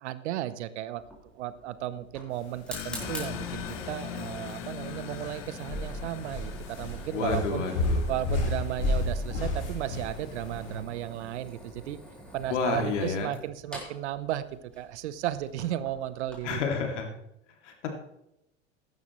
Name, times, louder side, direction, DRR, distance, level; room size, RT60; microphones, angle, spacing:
voice 1, 0.0-1.0 1.3-7.7 8.1-12.0 12.3-16.6, right 12 dB, 65° right, 15 dB, 0.9 m, -34 dB
Fire, 1.0-16.6, equal, 5° left, 4.1 m, -45 dB
sound 1, 2.3-10.8, left 1 dB, 55° left, 4.3 m, -32 dB
sound 2, 2.7-9.0, left 12 dB, 35° left, 0.7 m, -41 dB
voice 2, 7.1-8.0 12.5-13.3 16.4-17.1 17.6-17.9, left 4 dB, 70° left, 3 dB, 2.6 m, -30 dB
14.5 x 11.0 x 3.1 m, 0.84 s
hypercardioid pair, 100°, 37 cm